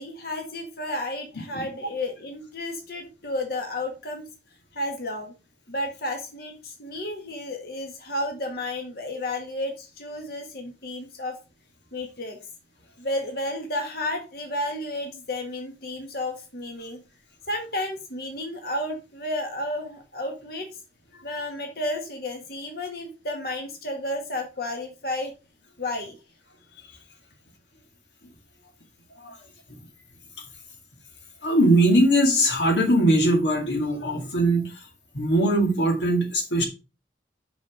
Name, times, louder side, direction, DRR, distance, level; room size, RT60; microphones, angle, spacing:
voice 1, 0.0-4.3 4.7-5.3 5.7-11.4 11.9-12.4 13.0-17.0 17.5-20.7 21.2-25.3 25.8-26.2, left 1 dB, 55° left, 1.8 m, -32 dB
voice 2, 31.4-34.8 35.1-36.7, right 1 dB, 80° left, 2.0 m, -21 dB
6.1 x 5.9 x 4.9 m
head